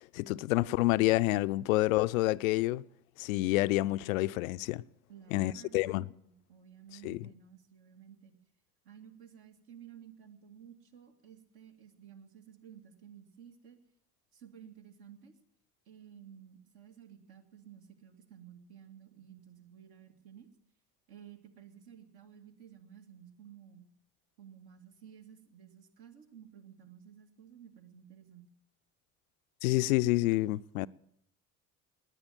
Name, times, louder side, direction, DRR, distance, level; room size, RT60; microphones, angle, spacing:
voice 1, 0.0-2.8 3.2-4.8 5.3-6.1 7.0-7.2 29.6-30.9, left 18 dB, 65° left, 0.6 m, -28 dB
voice 2, 5.1-8.3 8.8-13.8 14.3-15.3 15.9-20.5 21.1-23.9 24.4-28.5, right 9 dB, 55° right, 2.2 m, -54 dB
19.0 x 9.8 x 7.4 m
figure-of-eight pair, 65°, 45 cm